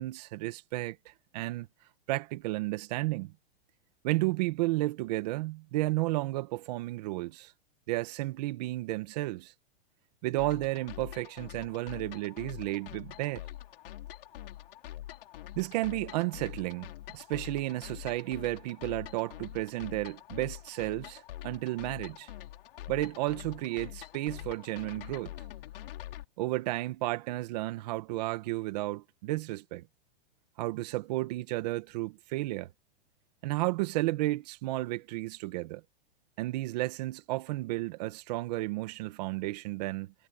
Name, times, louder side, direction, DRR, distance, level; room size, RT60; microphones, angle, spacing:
voice 1, 0.0-1.7 2.1-3.3 4.0-7.5 7.9-9.5 10.2-13.4 15.6-22.3 22.9-25.3 26.4-29.9 30.6-32.6 33.4-35.8 36.4-40.1, right 19 dB, 40° right, 1.9 m, -32 dB
sound 1, 10.4-26.2, left 13 dB, 65° left, 3.7 m, -45 dB
supercardioid pair, 165°, 30 cm